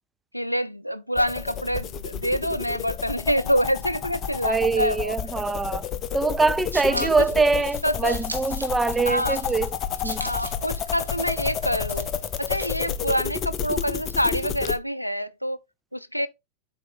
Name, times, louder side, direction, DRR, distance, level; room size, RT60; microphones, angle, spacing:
voice 1, 0.3-5.2 6.9-7.1 7.8-8.2 9.0-9.4 10.2-12.1 12.4-15.6 15.9-16.3, equal, 90° left, 0.4 m, -26 dB
sound 1, 1.2-14.8, left 8 dB, 30° left, 0.7 m, -31 dB
voice 2, 4.4-5.8 6.1-9.8 10.0-10.3, right 4 dB, 10° right, 0.4 m, -23 dB
sound 2, 6.4-13.0, right 2 dB, 85° right, 1.1 m, -40 dB
7.4 x 4.3 x 3.8 m
figure-of-eight pair, 90°, 0 cm